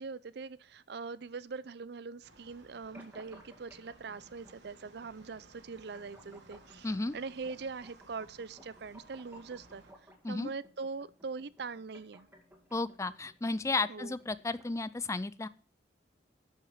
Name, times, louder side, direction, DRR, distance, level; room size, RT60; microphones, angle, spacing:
voice 1, 0.0-9.8 10.3-12.3 13.9-14.1, right 4 dB, 60° right, 0.5 m, -42 dB
sound 1, 2.2-9.9, right 2 dB, 80° right, 2.6 m, -59 dB
sound 2, 2.9-14.9, equal, 10° right, 2.2 m, -60 dB
voice 2, 6.8-7.1 10.2-10.5 12.7-15.5, left 3 dB, 15° left, 0.4 m, -33 dB
11.5 x 6.0 x 6.5 m
head